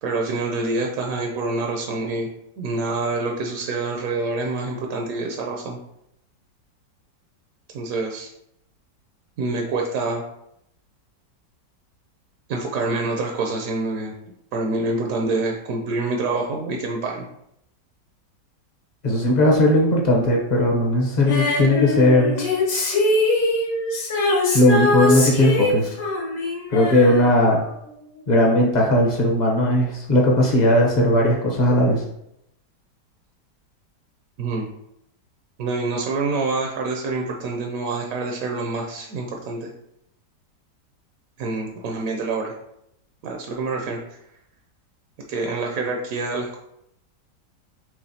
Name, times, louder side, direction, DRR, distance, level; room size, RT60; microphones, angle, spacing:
voice 1, 0.0-2.3 2.6-5.8 7.7-8.3 9.4-10.2 12.5-14.1 14.5-17.2 34.4-34.7 35.6-39.7 41.4-42.5 43.2-44.0 45.3-46.6, right 3 dB, 70° right, 1 dB, 0.8 m, -26 dB
voice 2, 19.0-22.3 24.5-25.9 26.7-27.6 28.3-32.0, left 1 dB, 45° left, -2 dB, 0.6 m, -18 dB
Female singing, 21.3-27.9 28.2-28.3, left 2 dB, 90° left, 1.7 m, -23 dB
4.9 x 3.4 x 2.7 m, 0.78 s
omnidirectional pair, 1.9 m